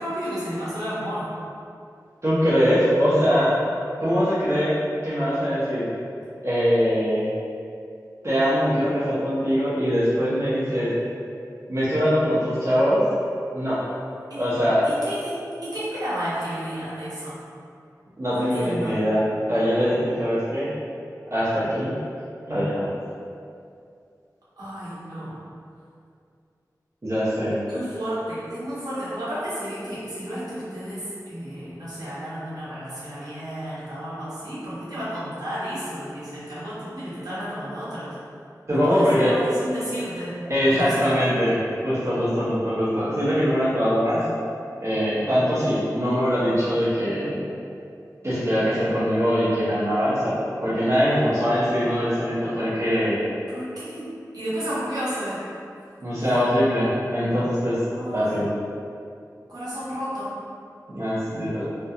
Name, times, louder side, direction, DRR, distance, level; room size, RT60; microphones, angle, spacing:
voice 1, 0.0-1.3 14.3-17.4 18.3-19.0 24.6-25.4 27.7-38.1 38.7-40.4 40.7-41.1 53.5-54.1 54.3-55.5 57.9-58.4 59.5-60.3, equal, 70° right, -11 dB, 0.9 m, -32 dB
voice 2, 2.2-3.6 4.0-4.7 5.0-5.9 6.4-7.3 8.2-10.9 11.7-13.0 13.5-13.8 14.3-14.9 18.2-19.2 19.5-20.7 21.3-21.9 22.5-22.9 27.0-27.6 38.7-39.3 40.5-44.2 44.8-47.4 48.2-50.3 50.6-53.2 56.0-57.8 58.1-58.5 60.9-61.6, equal, 45° right, -12 dB, 0.6 m, -22 dB
2.3 x 2.2 x 2.7 m, 2.5 s
wide cardioid pair, 75°, 7 cm